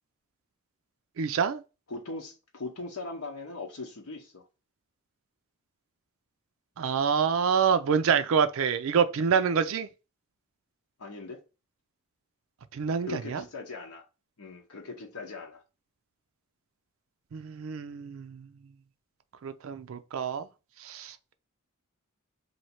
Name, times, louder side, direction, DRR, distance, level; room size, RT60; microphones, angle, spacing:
voice 1, 1.2-1.6 6.8-9.9 12.7-13.4 17.3-18.5 19.4-20.5 20.8-21.2, right 6 dB, 65° right, 0.4 m, -27 dB
voice 2, 1.9-4.5 11.0-11.4 13.1-14.1 14.4-15.6, left 3 dB, 75° left, 0.8 m, -40 dB
3.1 x 2.7 x 4.2 m
head